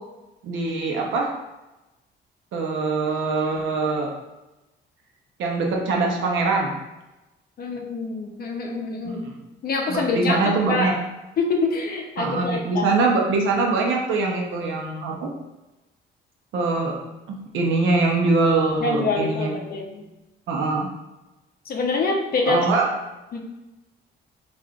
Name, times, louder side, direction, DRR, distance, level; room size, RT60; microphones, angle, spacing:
voice 1, 0.4-1.3 2.5-4.1 5.4-6.7 9.0-9.1 9.9-10.9 12.2-15.3 16.5-16.9 17.3-19.5 20.5-20.9 22.5-22.9, right 3 dB, 80° right, 0 dB, 0.7 m, -23 dB
voice 2, 7.6-9.2 9.6-10.4 10.7-10.9 11.4-13.0 18.8-20.0 21.7-22.7 23.3-23.4, left 3 dB, 50° left, 2 dB, 0.6 m, -25 dB
3.5 x 2.5 x 2.3 m, 1.0 s
cardioid pair, 90°, 20 cm